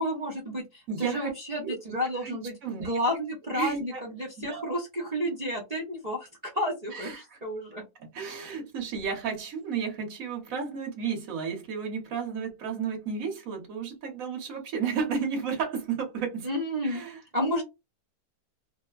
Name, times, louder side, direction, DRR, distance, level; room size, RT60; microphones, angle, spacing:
voice 1, 0.0-2.5 2.8-7.8 16.4-17.0 17.3-17.6, equal, 80° right, 0.3 m, -31 dB
voice 2, 0.9-1.3 1.6-1.9 2.2-2.3 2.6-3.0 3.5-4.0 4.4-4.7 6.9-7.4 8.0-16.5 16.8-17.2, right 6 dB, 55° right, 1.3 m, -32 dB
3.1 x 2.1 x 2.3 m
omnidirectional pair, 2.0 m